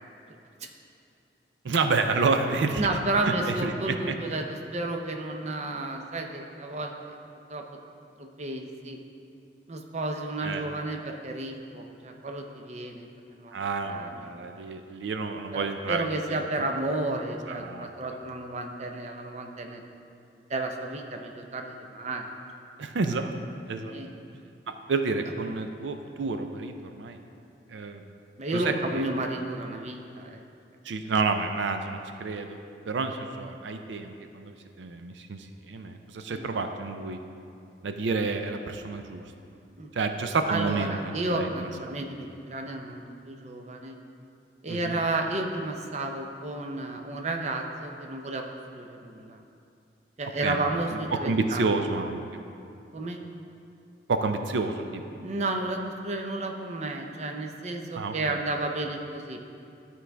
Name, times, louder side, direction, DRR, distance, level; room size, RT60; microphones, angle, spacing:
voice 1, 1.6-2.9 3.2-4.2 10.4-10.6 13.5-16.1 17.5-17.9 22.8-23.3 23.7-23.9 24.9-26.7 27.0-27.2 27.7-28.1 28.5-29.1 30.8-32.6 32.9-37.2 37.8-39.2 39.9-41.7 44.7-45.0 50.4-52.2 54.1-55.0 58.0-58.4, right 4 dB, 90° right, 7 dB, 0.5 m, -29 dB
voice 2, 2.8-6.9 7.5-7.6 8.2-9.0 9.7-13.6 13.9-14.2 14.5-14.6 15.5-19.8 20.5-22.3 23.8-24.1 28.4-30.4 36.3-36.5 39.8-39.9 40.5-43.9 44.6-48.4 48.7-49.4 50.2-51.8 52.9-53.2 55.2-59.4, right 2 dB, 40° right, 3 dB, 0.6 m, -32 dB
12.5 x 4.7 x 3.4 m, 2.6 s
head